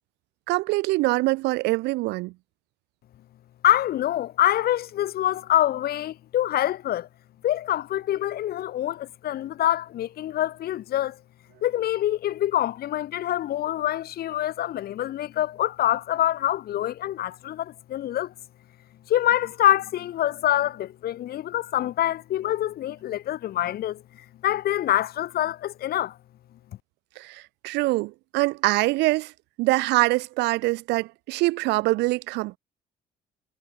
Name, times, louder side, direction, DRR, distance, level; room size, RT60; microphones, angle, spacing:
voice 1, 0.5-2.3 27.2-29.3 29.6-32.6, right 21 dB, 90° right, 1.0 m, -24 dB
voice 2, 3.6-7.1 7.4-11.2 11.6-18.3 19.1-24.0 24.4-26.2, left 12 dB, 65° left, 4.7 m, -25 dB
cardioid pair, 110°, 17 cm